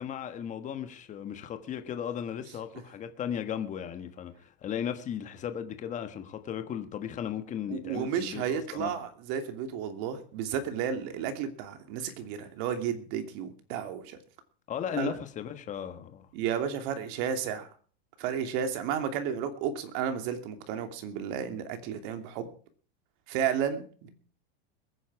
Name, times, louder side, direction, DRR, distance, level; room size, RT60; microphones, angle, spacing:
voice 1, 0.0-8.9 14.7-16.3, left 9 dB, 25° left, 1.5 m, -36 dB
voice 2, 7.7-14.2 14.9-15.1 16.3-17.7 18.2-22.5 23.3-24.1, right 8 dB, 50° right, 2.8 m, -32 dB
21.5 x 10.0 x 4.8 m
supercardioid pair, 145°, 31 cm